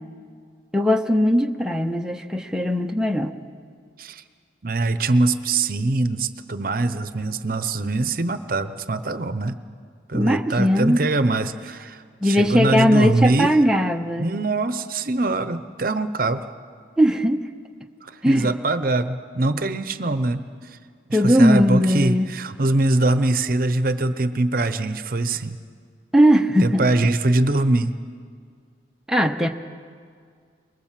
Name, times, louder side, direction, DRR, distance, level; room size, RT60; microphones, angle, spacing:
voice 1, 0.7-3.4 10.1-11.0 12.2-14.3 17.0-17.4 18.2-18.5 21.1-22.3 26.1-26.9 29.1-29.5, equal, 5° right, 3 dB, 0.7 m, -19 dB
voice 2, 4.6-9.6 10.1-13.5 14.2-16.5 18.0-20.4 21.1-25.6 26.6-28.0, right 2 dB, 50° right, 12 dB, 0.8 m, -23 dB
23.0 x 21.5 x 7.5 m, 2.1 s
head